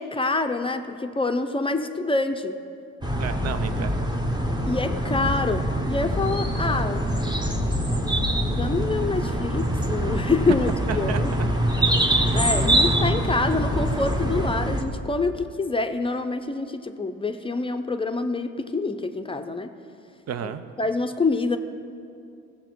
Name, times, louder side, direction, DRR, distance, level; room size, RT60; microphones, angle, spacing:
voice 1, 0.0-2.6 4.7-7.4 8.5-11.5 12.3-19.7 20.8-21.6, left 3 dB, 20° left, 7 dB, 0.6 m, -26 dB
sound 1, 3.0-14.8, right 1 dB, 15° right, 1.1 m, -24 dB
voice 2, 3.2-4.1 10.9-11.5 12.3-12.7 20.3-20.6, right 8 dB, 55° right, 11 dB, 0.7 m, -32 dB
16.0 x 7.2 x 4.6 m, 2.5 s
cardioid pair, 90°, 30 cm